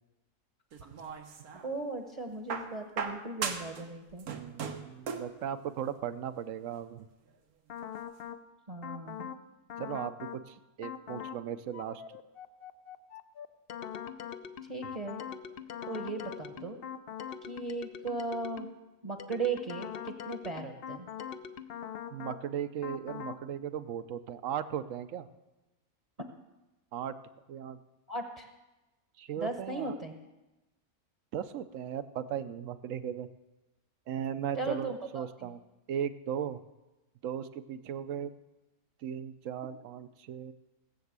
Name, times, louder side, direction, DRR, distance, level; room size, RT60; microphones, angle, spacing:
sound 1, 0.7-1.7 2.5-3.8 4.1-5.4 6.5-6.6, right 6 dB, 85° right, 1.6 m, -37 dB
voice 1, 1.6-4.3 8.7-9.3 14.6-15.2 15.9-16.8 17.4-18.7 19.0-21.1 28.1-28.5 29.4-30.2 34.5-35.5, right 3 dB, 30° right, 4 dB, 1.0 m, -37 dB
voice 2, 4.3-7.0 9.8-12.0 22.1-25.3 26.9-27.2 27.5-27.8 29.2-29.9 31.3-33.3 34.1-35.6 35.9-36.6 37.2-38.3 39.0-40.5, right 9 dB, 65° right, 13 dB, 1.0 m, -37 dB
sound 2, 7.7-8.4 8.8-9.4 9.7-10.4 10.8-11.4 11.7-18.8 19.2-22.4 22.8-23.4, left 8 dB, 55° left, 0.7 m, -42 dB
17.0 x 7.0 x 8.1 m, 1.1 s
omnidirectional pair, 1.5 m